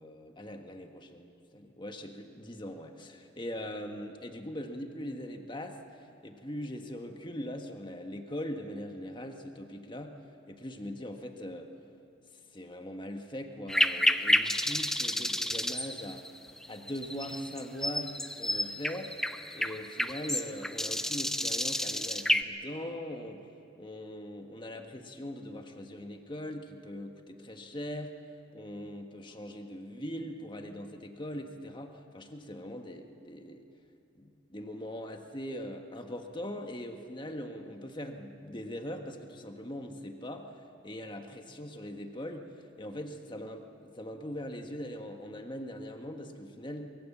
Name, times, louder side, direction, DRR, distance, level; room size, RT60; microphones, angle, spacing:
voice 1, 0.0-10.2 10.5-11.7 12.5-16.2 16.7-19.1 19.5-23.5 23.8-28.2 28.5-33.6 34.1-40.5 40.8-46.9, equal, 25° left, 4 dB, 1.5 m, -41 dB
sound 1, 13.7-22.4, left 1 dB, ahead, 0.6 m, -30 dB
24.5 x 22.0 x 7.3 m, 2.7 s
head